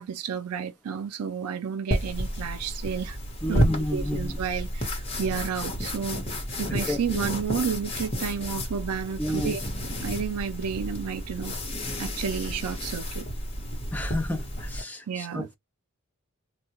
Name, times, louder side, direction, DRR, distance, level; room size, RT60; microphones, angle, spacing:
voice 1, 0.0-3.2 3.5-3.6 3.9-6.2 6.6-9.6 10.0-11.5 12.0-13.3 15.1-15.5, right 7 dB, 85° right, 0.4 m, -31 dB
sound 1, 1.9-14.8, equal, 25° left, 1.1 m, -31 dB
voice 2, 3.4-4.4 6.7-7.2 9.2-9.6 13.9-15.6, left 1 dB, 5° left, 0.5 m, -31 dB
3.5 x 2.2 x 2.8 m
head